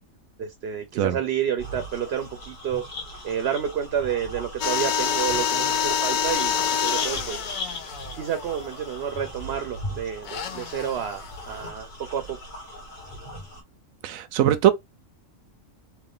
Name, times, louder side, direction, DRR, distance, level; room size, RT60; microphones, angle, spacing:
voice 1, 0.4-2.8 3.2-7.4 8.1-12.4, right 8 dB, 60° right, 0.8 m, -30 dB
sound 1, 1.6-13.6, right 1 dB, 40° left, 1.5 m, -41 dB
sound 2, 2.2-3.8 4.3-9.3, left 4 dB, 60° left, 1.5 m, -40 dB
sound 3, 4.6-9.2 10.2-11.7, left 7 dB, 75° left, 0.4 m, -27 dB
voice 2, 14.0-14.7, right 11 dB, 80° right, 1.0 m, -20 dB
3.4 x 2.5 x 3.6 m
omnidirectional pair, 1.4 m